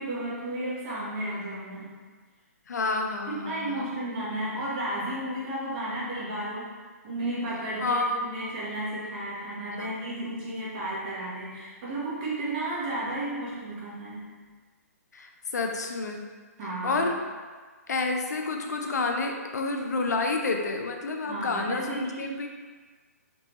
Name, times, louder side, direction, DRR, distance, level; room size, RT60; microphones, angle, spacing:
voice 1, 0.0-1.9 3.3-6.7 7.0-14.3 16.6-17.1 21.2-22.5, right 1 dB, 35° right, -7 dB, 1.1 m, -33 dB
voice 2, 2.7-3.8 7.8-8.2 9.7-9.9 15.1-16.2 16.8-17.1 17.9-22.5, left 3 dB, 80° left, 3 dB, 0.5 m, -29 dB
3.3 x 2.9 x 3.0 m, 1.5 s
hypercardioid pair, 150°, 9 cm